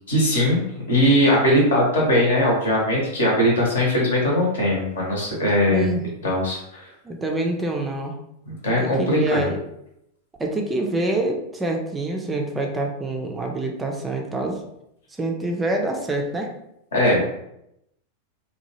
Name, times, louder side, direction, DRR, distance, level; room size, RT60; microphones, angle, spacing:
voice 1, 0.1-5.9 6.2-6.8 8.5-9.4 16.9-17.3, equal, 65° left, -2 dB, 0.9 m, -20 dB
voice 2, 5.7-6.1 7.0-8.1 8.8-9.6 10.4-14.6 15.2-16.5, right 2 dB, 15° right, 2 dB, 0.4 m, -26 dB
2.9 x 2.2 x 2.9 m, 0.80 s
figure-of-eight pair, 90°, 0 cm